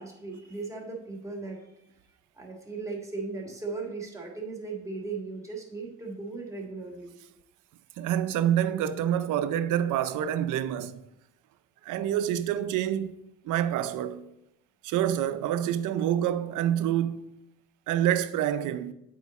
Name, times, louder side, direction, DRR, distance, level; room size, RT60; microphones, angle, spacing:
voice 1, 0.0-1.7 2.3-7.1, right 3 dB, 10° right, 1.9 m, -37 dB
voice 2, 8.0-11.0 11.8-13.2 13.4-14.3 14.8-17.2 17.9-18.9, right 10 dB, 85° right, 0.5 m, -27 dB
8.4 x 4.6 x 4.1 m
cardioid pair, 90°, 30 cm